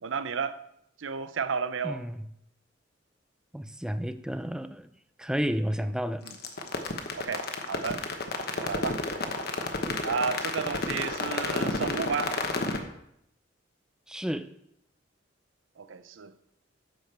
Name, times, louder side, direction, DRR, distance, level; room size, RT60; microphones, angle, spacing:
voice 1, 0.0-0.6 1.0-2.0 7.1-8.0 8.5-9.0 10.0-12.4 15.8-16.3, right 5 dB, 75° right, 0.6 m, -32 dB
voice 2, 1.8-2.3 3.5-4.9 5.2-6.2 14.1-14.5, equal, 5° right, 0.5 m, -31 dB
sound 1, 6.3-12.8, left 3 dB, 55° left, 1.2 m, -30 dB
10.0 x 5.1 x 6.7 m
head